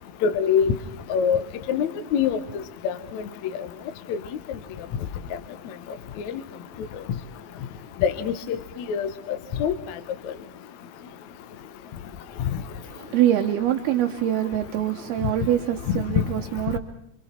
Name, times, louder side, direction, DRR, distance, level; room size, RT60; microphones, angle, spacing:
voice 1, 0.2-0.7 1.1-1.4 1.7-2.4 2.8-3.2 4.1-4.2 8.0-8.6 8.9-9.7, left 7 dB, 70° left, 1.8 m, -23 dB
voice 2, 12.9-16.8, right 11 dB, 80° right, 2.9 m, -24 dB
27.5 x 26.0 x 4.4 m
omnidirectional pair, 4.5 m